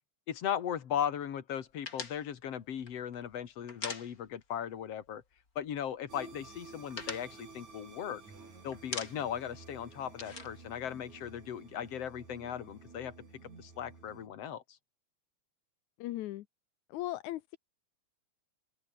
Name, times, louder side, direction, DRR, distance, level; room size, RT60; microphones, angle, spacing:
voice 1, 0.3-5.2 5.6-8.2 8.6-13.1 13.6-14.8, left 9 dB, 60° left, 2.9 m, -37 dB
sound 1, 1.8-4.6 4.9-5.1 5.4-6.1 6.4-8.4 8.7-9.5 9.7-11.6, left 4 dB, 30° left, 3.3 m, -43 dB
sound 2, 6.1-14.3, right 4 dB, 75° right, 6.9 m, -52 dB
voice 2, 16.0-16.5 16.9-17.6, left 15 dB, 80° left, 2.3 m, -37 dB
open air
omnidirectional pair, 3.4 m